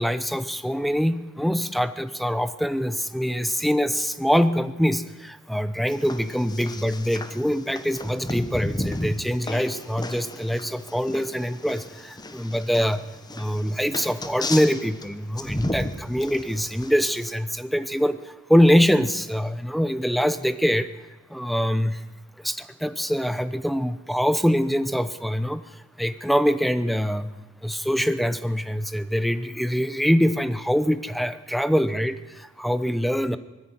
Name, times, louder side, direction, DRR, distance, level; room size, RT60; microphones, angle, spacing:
voice 1, 0.0-13.0 13.3-18.2 18.5-20.9 21.3-22.0 22.4-25.6 26.0-27.3 27.6-33.4, equal, ahead, 13 dB, 0.8 m, -24 dB
sound 1, 5.9-17.3, left 1 dB, 20° left, 1.1 m, -34 dB
20.0 x 14.0 x 9.6 m, 1.2 s
head